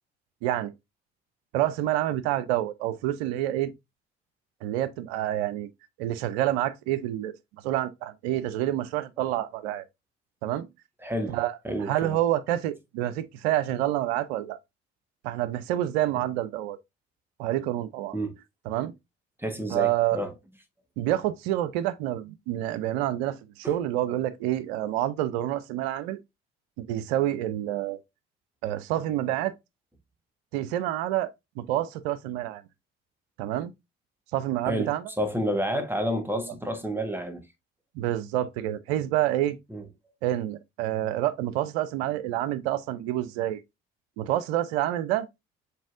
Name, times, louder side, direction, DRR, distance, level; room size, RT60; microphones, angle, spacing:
voice 1, 0.4-0.7 1.5-3.7 4.6-5.7 6.0-7.3 7.6-9.8 10.4-10.7 11.3-14.6 15.2-16.8 17.4-18.2 18.7-18.9 19.7-20.2 21.0-26.2 26.8-28.0 28.6-29.5 30.5-31.3 31.6-32.6 33.4-33.7 34.3-35.1 38.0-39.6 40.2-43.6 44.2-45.3, right 13 dB, 75° right, 0.5 m, -28 dB
voice 2, 11.0-11.4 11.6-12.2 18.1-18.4 19.4-20.3 23.6-23.8 34.7-37.4 39.7-39.8, equal, 5° right, 1.3 m, -30 dB
7.2 x 2.7 x 2.4 m
figure-of-eight pair, 40°, 32 cm